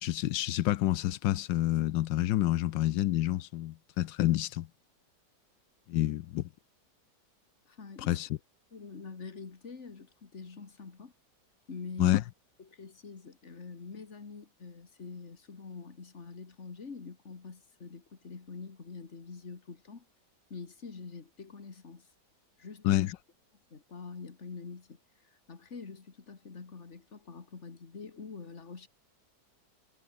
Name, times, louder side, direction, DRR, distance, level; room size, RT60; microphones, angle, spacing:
voice 1, 0.0-4.7 5.9-6.4 8.0-8.4 12.0-12.2 22.8-23.2, left 15 dB, 85° left, 1.4 m, -28 dB
voice 2, 7.7-8.2 8.7-11.1 11.7-12.2 12.6-20.0 20.5-22.1 22.6-23.0 23.7-25.0 25.5-28.9, left 4 dB, 40° left, 2.4 m, -45 dB
omnidirectional pair, 1.9 m